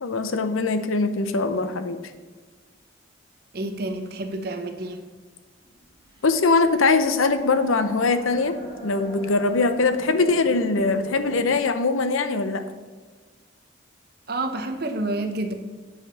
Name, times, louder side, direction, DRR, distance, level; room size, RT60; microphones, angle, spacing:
voice 1, 0.0-2.0 6.2-8.6 8.8-12.6, left 3 dB, 90° left, 10 dB, 0.7 m, -22 dB
voice 2, 3.5-5.0 14.3-15.5, right 2 dB, 50° right, 5 dB, 0.9 m, -29 dB
sound 1, 5.6-11.6, right 1 dB, 20° right, 2.2 m, -40 dB
8.8 x 5.1 x 5.6 m, 1.4 s
head